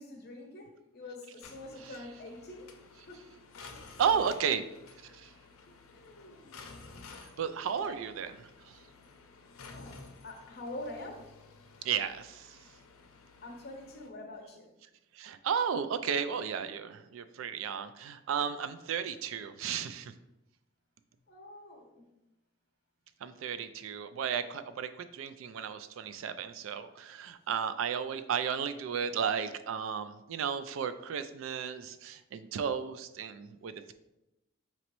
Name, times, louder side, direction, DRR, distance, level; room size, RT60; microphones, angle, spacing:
voice 1, 0.0-2.7 3.1-3.3 3.7-4.6 5.9-6.6 7.8-8.0 9.7-11.3 13.4-14.7 21.3-22.1, left 1 dB, 50° left, 2 dB, 0.8 m, -46 dB
sound 1, 1.4-14.1, left 4 dB, 85° left, 0.5 m, -53 dB
voice 2, 4.0-4.6 5.0-5.3 7.2-8.3 8.7-8.8 11.8-12.6 15.1-20.1 23.2-33.9, right 7 dB, 70° right, 11 dB, 0.3 m, -34 dB
5.2 x 2.9 x 3.0 m, 0.93 s
head